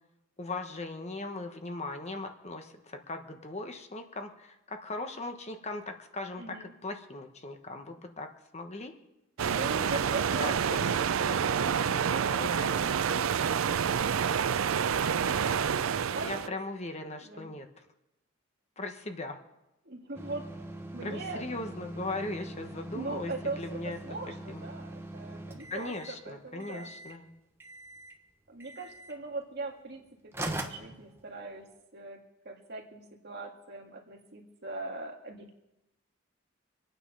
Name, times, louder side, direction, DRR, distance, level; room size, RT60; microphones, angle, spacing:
voice 1, 0.4-8.3 8.5-8.9 10.1-11.4 11.8-12.8 16.2-17.7 18.8-19.4 21.0-24.0 24.3-24.7 25.7-27.3, left 2 dB, 35° left, 5 dB, 1.2 m, -39 dB
voice 2, 6.4-6.7 9.4-10.6 15.2-16.6 17.2-17.5 19.8-20.5 20.9-21.4 22.9-26.9 28.5-30.0 30.4-31.7 31.9-32.2 32.5-35.6, right 3 dB, 55° right, 2 dB, 2.1 m, -41 dB
sound 1, 9.4-16.5, right 7 dB, 85° right, 0.5 m, -28 dB
sound 2, 20.1-26.2 26.6-27.2 27.6-28.2 28.6-29.2 29.9-30.0 30.3-31.6, right 1 dB, 10° right, 1.2 m, -42 dB
25.0 x 9.3 x 5.5 m, 0.92 s
head